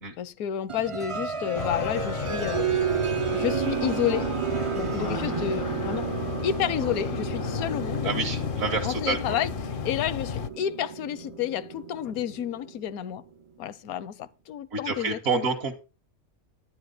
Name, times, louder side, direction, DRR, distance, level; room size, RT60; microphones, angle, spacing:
voice 1, 0.2-2.7 3.3-4.3 4.7-6.1 6.4-8.1 8.8-13.3 13.6-15.5, left 10 dB, 80° left, 1.2 m, -30 dB
sound 1, 0.7-13.2, right 6 dB, 50° right, 0.4 m, -32 dB
sound 2, 1.6-10.5, left 7 dB, 55° left, 0.6 m, -33 dB
voice 2, 8.0-9.4 14.7-15.7, right 4 dB, 65° right, 1.6 m, -28 dB
11.0 x 10.0 x 3.9 m
omnidirectional pair, 1.6 m